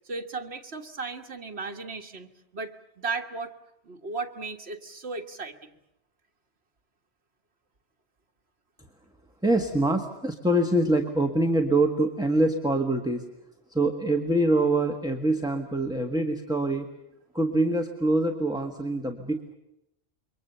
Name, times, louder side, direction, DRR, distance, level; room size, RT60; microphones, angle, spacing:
voice 1, 0.1-3.5 3.8-5.5, right 4 dB, 70° right, 4 dB, 1.9 m, -35 dB
voice 2, 9.4-13.2 13.7-16.9 17.3-19.5, right 1 dB, 5° right, 3 dB, 1.5 m, -24 dB
27.5 x 23.5 x 6.9 m, 0.86 s
omnidirectional pair, 1.1 m